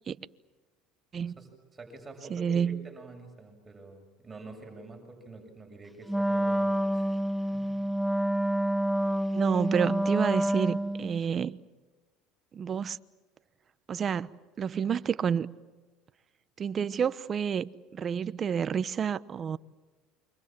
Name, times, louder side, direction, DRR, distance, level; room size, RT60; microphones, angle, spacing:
voice 1, 1.2-7.2 7.5-7.9, right 2 dB, 20° right, 7.3 m, -48 dB
voice 2, 2.3-2.8 9.3-11.6 12.5-13.0 13.9-14.3 14.6-15.5 16.6-19.6, right 7 dB, 35° right, 1.0 m, -29 dB
Wind instrument woodwind instrument, 6.1-11.2, right 1 dB, ahead, 1.2 m, -28 dB
29.0 x 25.5 x 7.6 m
supercardioid pair, 100°, 0 cm